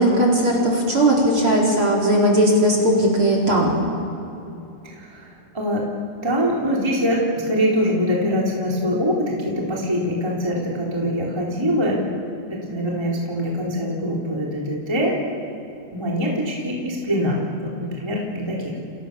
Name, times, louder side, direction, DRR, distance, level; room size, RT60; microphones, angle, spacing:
voice 1, 0.0-3.8, right 1 dB, 30° right, 0 dB, 4.6 m, -18 dB
voice 2, 4.9-5.3 5.5-5.8 6.2-12.0 12.6-15.2 15.9-18.8, equal, 5° right, -3 dB, 3.7 m, -23 dB
30.0 x 28.0 x 7.1 m, 2.9 s
omnidirectional pair, 5.1 m